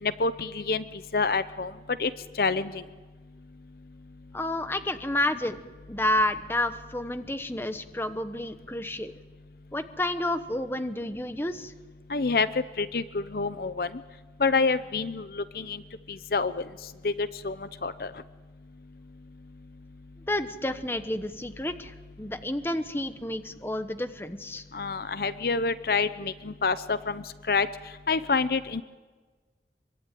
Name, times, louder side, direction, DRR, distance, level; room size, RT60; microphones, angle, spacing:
voice 1, 0.0-0.8 1.1-1.7 2.0-2.1 2.4-2.8 12.1-12.5 12.8-13.9 14.4-15.8 16.1-16.6 17.0-17.6 17.8-18.1 24.7-27.7 28.1-28.8, left 4 dB, 55° left, 13 dB, 0.7 m, -27 dB
voice 2, 4.3-9.1 9.7-11.7 20.3-24.6, left 1 dB, 15° left, 9 dB, 1.1 m, -30 dB
24.5 x 23.5 x 9.2 m, 1.4 s
head